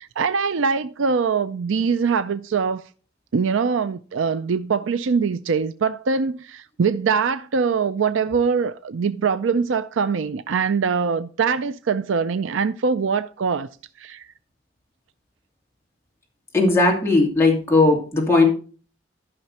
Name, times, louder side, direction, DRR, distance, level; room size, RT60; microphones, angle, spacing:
voice 1, 0.0-2.8 3.3-13.7 14.0-14.3, right 5 dB, 90° right, 0.5 m, -23 dB
voice 2, 16.5-18.5, left 2 dB, 15° left, 2.6 m, -17 dB
14.0 x 5.9 x 4.2 m
head